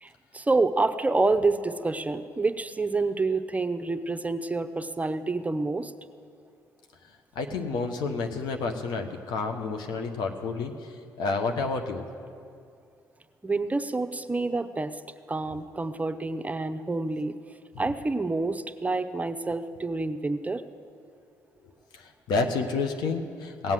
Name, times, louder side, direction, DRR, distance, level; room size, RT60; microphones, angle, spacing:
voice 1, 0.0-5.9 13.4-15.0 15.3-17.3 17.8-20.6, right 3 dB, 20° right, 8 dB, 0.7 m, -28 dB
voice 2, 7.3-10.7 11.2-12.0 21.9-23.7, left 4 dB, 80° left, 5 dB, 1.2 m, -29 dB
17.5 x 7.9 x 7.5 m, 2.4 s
supercardioid pair, 60°, 7 cm